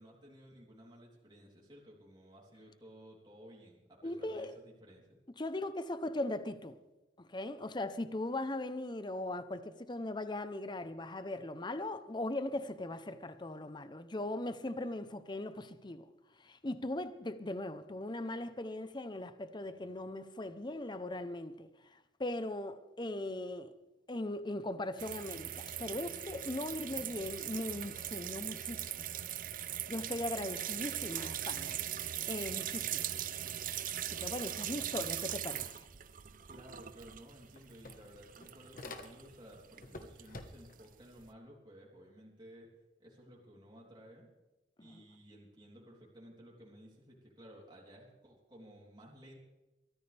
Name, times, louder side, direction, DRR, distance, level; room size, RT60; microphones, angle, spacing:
voice 1, 0.0-5.2 36.4-42.7 43.0-44.3 44.8-49.4, equal, 25° right, 3.5 m, -55 dB
voice 2, 4.0-4.5 5.4-6.8 7.2-16.1 16.4-23.7 24.1-29.1 29.7-31.8 32.3-33.1 34.1-35.9 44.8-45.0, left 1 dB, 25° left, 0.8 m, -39 dB
sound 1, 25.0-41.3, right 11 dB, 50° right, 0.7 m, -40 dB
sound 2, 36.8-36.9 37.2-39.5 39.8-40.9, left 2 dB, 50° left, 1.4 m, -49 dB
23.0 x 14.5 x 3.5 m
head